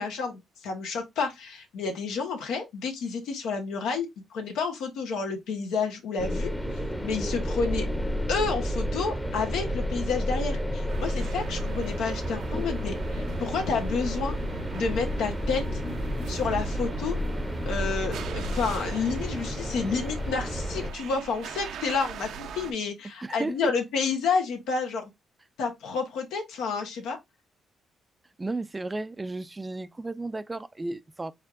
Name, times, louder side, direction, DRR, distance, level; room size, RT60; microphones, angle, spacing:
voice 1, 0.0-6.5 7.0-7.9 8.3-14.4 14.7-15.8 16.3-17.2 17.6-25.1 25.6-27.2, left 5 dB, 85° left, 1.2 m, -30 dB
sound 1, 6.2-20.9, equal, 5° left, 0.7 m, -31 dB
sound 2, 10.9-22.7, right 6 dB, 75° right, 0.5 m, -41 dB
voice 2, 23.2-23.7 28.4-31.3, right 2 dB, 20° right, 0.4 m, -33 dB
4.5 x 3.5 x 2.5 m
cardioid pair, 90°, 0 cm